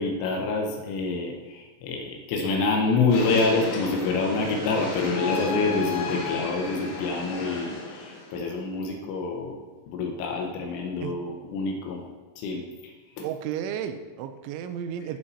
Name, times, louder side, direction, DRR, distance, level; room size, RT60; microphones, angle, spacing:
voice 1, 0.0-9.6 9.9-12.0 12.4-12.9 13.2-13.3, left 3 dB, 90° left, 1 dB, 3.6 m, -27 dB
sound 1, 3.1-8.6, left 4 dB, 65° left, 4.0 m, -33 dB
voice 2, 13.2-15.2, right 9 dB, 80° right, 9 dB, 3.0 m, -33 dB
15.0 x 5.5 x 4.2 m, 1.3 s
omnidirectional pair, 5.4 m